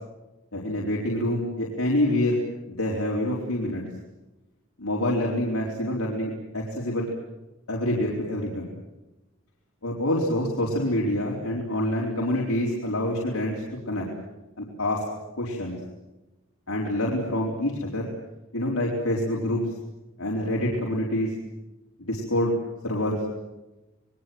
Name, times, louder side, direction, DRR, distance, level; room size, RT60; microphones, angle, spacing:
voice 1, 0.5-2.4 2.7-3.8 4.8-7.1 7.7-8.7 9.8-14.1 14.6-15.0 15.4-15.8 16.7-18.1 18.5-19.6 20.2-21.3 22.0-22.5 22.8-23.2, left 1 dB, 85° left, -3 dB, 4.3 m, -26 dB
28.5 x 21.5 x 7.9 m, 1.0 s
head